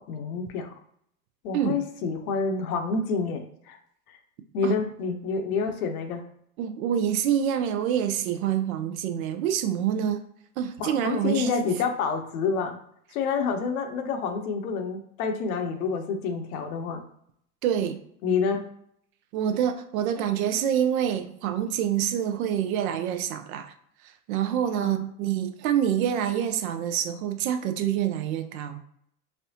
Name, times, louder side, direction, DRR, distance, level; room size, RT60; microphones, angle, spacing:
voice 1, 0.1-0.7 1.4-3.8 4.1-4.2 4.5-6.2 10.8-12.8 13.1-17.0 18.2-18.7 24.8-25.0, left 5 dB, 65° left, 6 dB, 0.7 m, -28 dB
voice 2, 6.6-10.2 10.6-11.5 17.6-18.0 19.3-23.7 24.3-28.8, right 9 dB, 65° right, 8 dB, 0.6 m, -26 dB
4.1 x 2.1 x 2.7 m, 0.70 s
hypercardioid pair, 95°, 47 cm